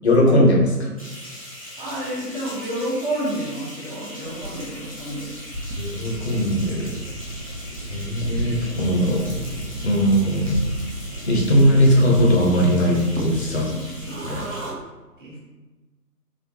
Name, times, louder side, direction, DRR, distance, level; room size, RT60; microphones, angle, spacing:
voice 1, 0.0-0.9 5.8-6.9 7.9-9.3 9.8-10.5 11.3-13.7 14.2-14.5, equal, 40° left, -2 dB, 1.0 m, -19 dB
sound 1, 1.0-14.7, left 1 dB, 20° left, 0.6 m, -40 dB
voice 2, 1.8-5.3 13.6-14.6 15.2-15.4, right 1 dB, 30° right, -6 dB, 1.2 m, -30 dB
sound 2, 4.2-14.8, right 1 dB, 55° right, 0.8 m, -35 dB
sound 3, 6.1-12.1, right 1 dB, 10° right, 1.0 m, -35 dB
4.2 x 2.5 x 3.0 m, 1.2 s
figure-of-eight pair, 150°, 48 cm